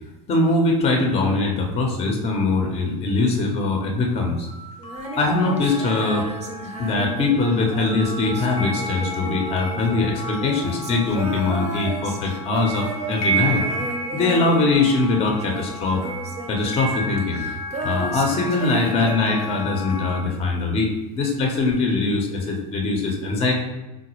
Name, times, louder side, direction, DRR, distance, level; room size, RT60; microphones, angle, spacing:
voice 1, 0.3-4.5 5.2-6.3 6.8-13.6 14.1-16.0 16.5-17.4 17.8-20.9 21.1-23.5, left 3 dB, 30° left, 1 dB, 0.7 m, -22 dB
barneys chimes, 4.5-20.2, right 1 dB, 75° left, 0.6 m, -32 dB
Female singing, 4.8-20.2 21.7-21.8, right 3 dB, 35° right, 0.6 m, -34 dB
3.9 x 2.1 x 2.9 m, 1.0 s
hypercardioid pair, 95°, 19 cm